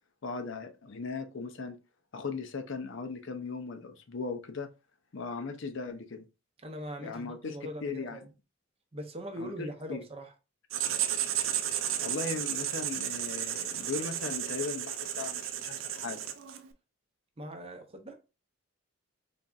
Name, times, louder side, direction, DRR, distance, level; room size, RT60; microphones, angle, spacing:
voice 1, 0.2-1.8 2.1-4.7 5.1-6.2 7.0-8.2 9.4-10.0 12.0-16.3, left 4 dB, 60° left, 0.6 m, -38 dB
voice 2, 6.6-8.3 8.9-10.3 17.4-18.1, equal, 30° right, 0.6 m, -41 dB
Writing, 10.7-16.7, right 10 dB, 70° right, 0.5 m, -33 dB
4.0 x 3.4 x 2.4 m
head